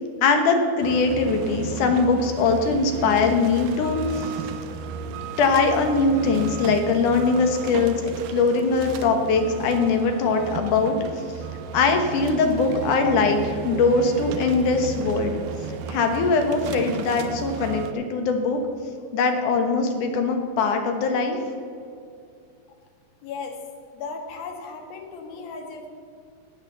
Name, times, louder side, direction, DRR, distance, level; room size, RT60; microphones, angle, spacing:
voice 1, 0.2-4.3 5.4-11.0 11.7-15.4 15.9-18.6 19.1-21.4, left 4 dB, 65° left, 5 dB, 2.6 m, -21 dB
sound 1, 0.8-17.9, right 6 dB, 75° right, 2.2 m, -34 dB
voice 2, 23.2-23.6 23.9-25.9, left 4 dB, 85° left, 3 dB, 3.4 m, -36 dB
17.0 x 6.8 x 6.9 m, 2.3 s
omnidirectional pair, 4.1 m